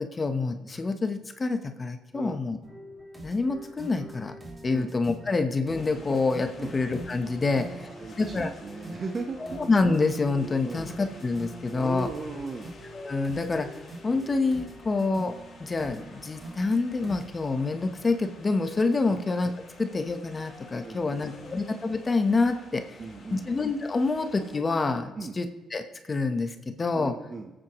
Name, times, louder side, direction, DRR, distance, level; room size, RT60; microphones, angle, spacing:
voice 1, 0.0-2.6 3.2-4.3 4.6-7.7 8.2-8.5 9.4-12.1 12.9-13.7 14.0-15.3 15.6-19.5 19.8-23.0 23.3-27.1, left 3 dB, 30° left, 7 dB, 1.1 m, -27 dB
sound 1, 2.6-17.3, right 1 dB, 20° right, 2.2 m, -44 dB
sound 2, 5.7-24.6, left 3 dB, 55° left, 3.3 m, -51 dB
voice 2, 7.5-9.6 10.6-11.0 11.7-12.7 19.1-19.3 20.8-21.6 23.0-23.5 25.1-25.3 26.9-27.5, right 4 dB, 40° right, 3 dB, 1.1 m, -38 dB
24.0 x 8.8 x 3.1 m, 1.1 s
cardioid pair, 90°, 0 cm